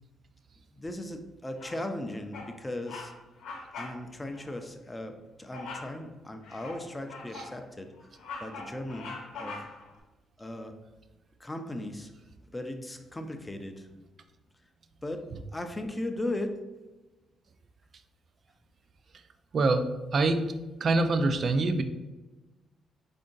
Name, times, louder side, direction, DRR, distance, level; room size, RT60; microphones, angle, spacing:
voice 1, 0.7-3.1 3.8-7.9 8.4-9.1 9.4-9.7 10.4-10.8 11.4-12.1 12.5-13.8 15.0-15.3 15.5-16.6, left 1 dB, 15° left, 6 dB, 0.4 m, -37 dB
Bird vocalization bird call bird song, 1.6-2.0 2.3-2.6 2.8-3.1 3.4-4.0 4.3-4.5 5.5-5.9 6.4-7.6 8.0-9.9, left 3 dB, 85° left, 0.7 m, -42 dB
voice 2, 19.5-20.5 20.8-21.8, right 2 dB, 50° right, 9 dB, 0.3 m, -25 dB
3.6 x 2.6 x 3.7 m, 1.1 s
cardioid pair, 90°, 0 cm